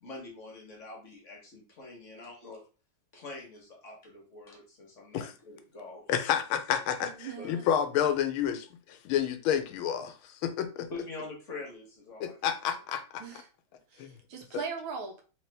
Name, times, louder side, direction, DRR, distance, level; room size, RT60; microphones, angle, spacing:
voice 1, 0.0-2.6 3.1-6.1 7.4-7.6 10.6-12.4, left 3 dB, 45° left, 1.1 m, -45 dB
voice 2, 6.1-10.9 12.2-13.2 14.0-14.1, left 9 dB, 85° left, 1.5 m, -30 dB
voice 3, 7.0-7.7 13.2-13.4 13.9-15.2, right 5 dB, 85° right, 1.7 m, -39 dB
3.3 x 3.2 x 3.2 m
omnidirectional pair, 2.2 m